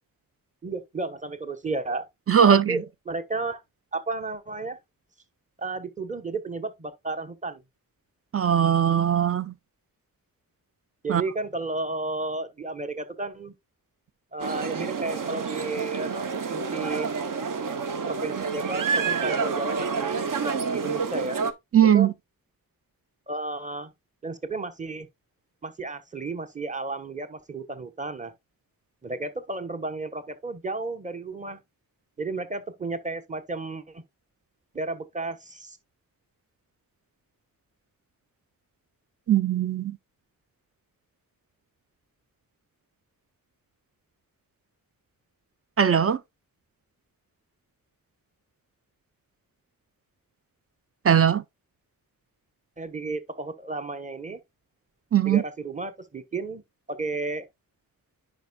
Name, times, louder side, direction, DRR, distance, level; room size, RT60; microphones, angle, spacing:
voice 1, 0.6-2.1 2.5-3.6 3.9-4.8 5.6-7.6 11.0-13.5 14.3-17.1 18.0-21.4 21.9-22.1 23.3-23.9 24.2-25.1 25.6-28.3 29.0-31.6 32.2-34.0 34.7-35.8 52.8-54.4 55.3-56.6 56.9-57.5, right 3 dB, 20° right, 1.0 m, -33 dB
voice 2, 2.3-2.8 8.3-9.5 11.1-11.2 21.7-22.1 39.3-40.0 45.8-46.2 51.0-51.4 55.1-55.4, right 8 dB, 40° right, 0.5 m, -20 dB
sound 1, 14.4-21.5, right 5 dB, 60° right, 0.8 m, -28 dB
10.0 x 5.3 x 2.3 m
wide cardioid pair, 140°, 36 cm